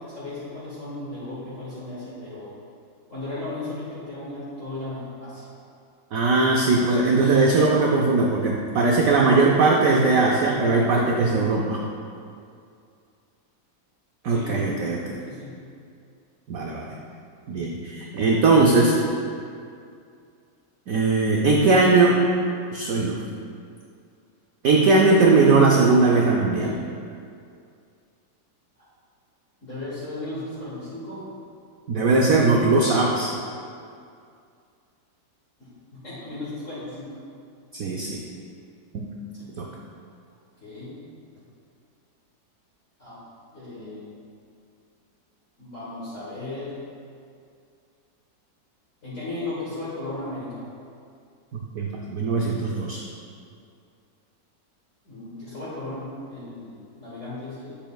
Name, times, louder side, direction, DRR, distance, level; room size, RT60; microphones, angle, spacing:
voice 1, 0.0-2.5 3.1-5.5 14.3-14.6 15.2-15.6 21.6-22.0 29.6-31.2 35.6-37.1 39.4-39.5 40.6-41.0 43.0-43.2 43.5-44.0 45.6-46.8 49.0-50.7 55.0-57.8, left 2 dB, 45° left, -10 dB, 1.6 m, -35 dB
voice 2, 6.1-11.8 14.2-15.2 16.5-16.9 17.5-19.0 20.9-22.2 22.7-23.2 24.6-26.8 31.9-33.3 37.7-38.2 38.9-39.1 39.6-39.7 51.5-53.0, right 3 dB, 80° right, -1 dB, 0.7 m, -19 dB
7.6 x 6.9 x 2.3 m, 2.3 s
omnidirectional pair, 2.1 m